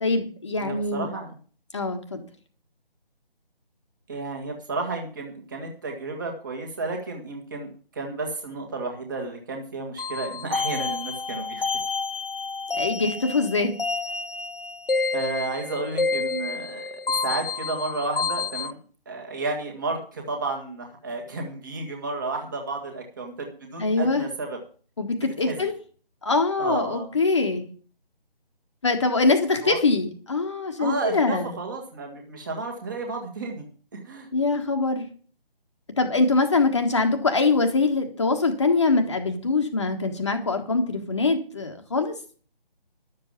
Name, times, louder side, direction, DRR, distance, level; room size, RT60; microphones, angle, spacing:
voice 1, 0.0-1.1 1.7-2.2 12.8-13.7 23.8-24.3 25.0-25.7 26.2-27.7 28.8-31.5 34.3-35.1 36.0-42.1, left 3 dB, 30° left, 4 dB, 1.4 m, -23 dB
voice 2, 0.6-1.3 4.1-11.6 15.1-18.8 19.1-24.6 25.2-25.6 26.6-27.1 29.6-29.8 30.8-33.6 33.9-34.3, right 3 dB, 20° right, 2 dB, 1.9 m, -32 dB
sound 1, 10.0-18.7, left 4 dB, 65° left, 1.4 m, -29 dB
11.5 x 7.5 x 7.3 m, 0.41 s
figure-of-eight pair, 155°, 30 cm